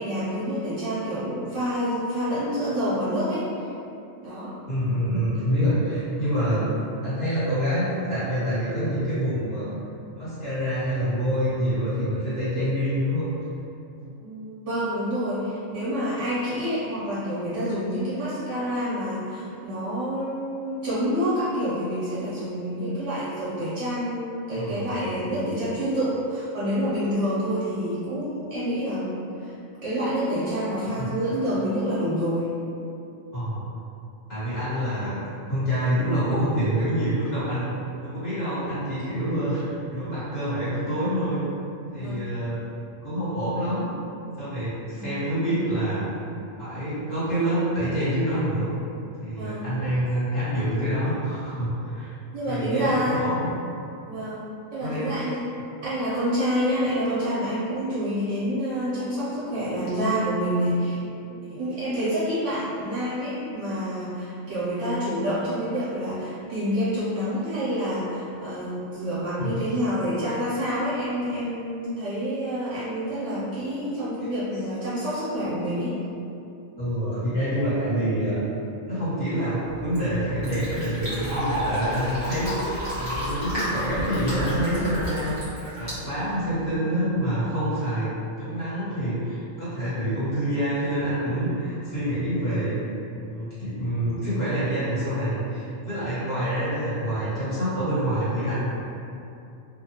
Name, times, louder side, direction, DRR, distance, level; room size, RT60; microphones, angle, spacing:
voice 1, 0.0-3.5 4.2-4.6 14.2-29.5 29.8-32.5 42.0-42.3 44.9-45.1 49.4-49.7 52.3-53.2 54.0-54.4 54.7-55.4 55.8-61.0 61.5-76.0 96.2-96.3, equal, 60° right, -11 dB, 1.1 m, -27 dB
voice 2, 4.7-6.7 7.0-9.7 10.1-13.3 24.5-25.3 31.0-31.1 33.3-33.7 34.3-35.2 35.5-37.7 38.0-39.6 39.9-41.5 41.9-42.6 43.0-43.9 44.4-46.1 46.6-48.7 49.2-52.1 52.5-53.5 54.8-55.1 69.4-69.6 74.2-74.3 76.8-78.4 78.9-88.1 88.4-92.8 93.1-98.6, equal, 50° left, -14 dB, 1.4 m, -26 dB
Fill (with liquid), 79.6-86.7, equal, 20° left, 1.0 m, -31 dB
3.0 x 2.3 x 2.8 m, 2.7 s
omnidirectional pair, 1.4 m